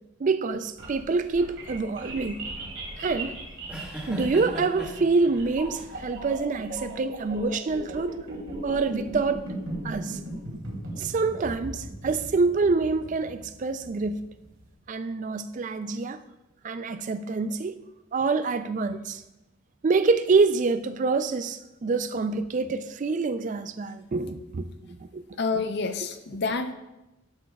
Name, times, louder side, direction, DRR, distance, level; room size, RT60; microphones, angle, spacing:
voice 1, 0.2-2.4 3.0-3.3 4.1-8.2 8.6-9.4 9.8-10.2 11.0-14.2 14.9-16.2 16.6-17.8 18.1-19.2 19.8-25.2, right 4 dB, 35° right, 0.3 m, -26 dB
sound 1, 0.5-14.6, right 1 dB, 60° right, 2.5 m, -38 dB
sound 2, 0.9-6.4, right 1 dB, 5° right, 1.2 m, -40 dB
voice 2, 25.4-26.7, left 4 dB, 50° left, 0.5 m, -28 dB
12.0 x 6.2 x 2.3 m
head